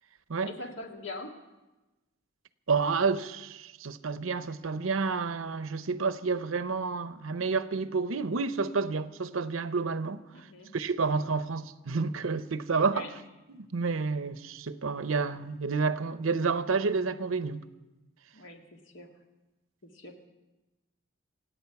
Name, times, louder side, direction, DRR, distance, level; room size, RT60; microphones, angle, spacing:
voice 1, 0.5-1.3 10.3-10.7 12.9-13.1 18.3-18.6 18.9-19.1 19.9-20.2, left 2 dB, 65° left, 2.1 m, -42 dB
voice 2, 2.7-10.5 10.7-13.2 13.5-17.6, right 4 dB, 85° right, 0.7 m, -30 dB
26.5 x 8.9 x 5.9 m
head